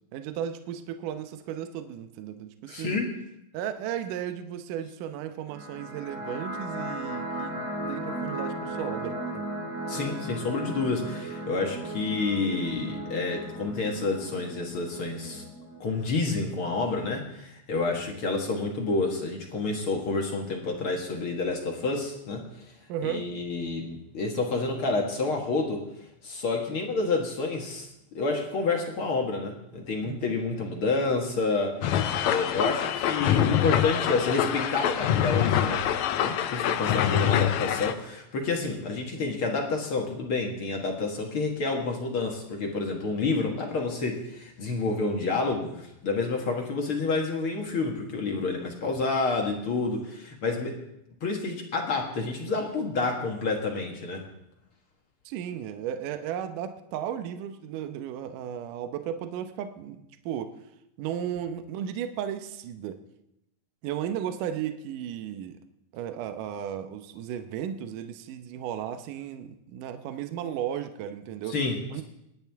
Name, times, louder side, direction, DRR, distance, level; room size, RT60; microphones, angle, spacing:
voice 1, 0.1-3.0 3.5-9.5 22.9-23.3 30.0-30.3 38.7-38.8 55.3-60.5 61.0-63.0 63.8-65.6 65.9-71.6 71.9-72.0, right 9 dB, 75° right, 8 dB, 2.2 m, -35 dB
voice 2, 2.7-3.1 9.9-15.4 15.8-22.6 23.0-25.8 26.2-35.8 36.2-50.8 51.2-54.2 71.5-71.8, left 3 dB, 50° left, 1 dB, 1.8 m, -29 dB
sound 1, 5.5-16.5, right 1 dB, 30° right, 1.8 m, -36 dB
sound 2, 31.8-37.9, left 10 dB, 85° left, 1.6 m, -25 dB
27.0 x 10.5 x 3.5 m, 0.84 s
omnidirectional pair, 4.2 m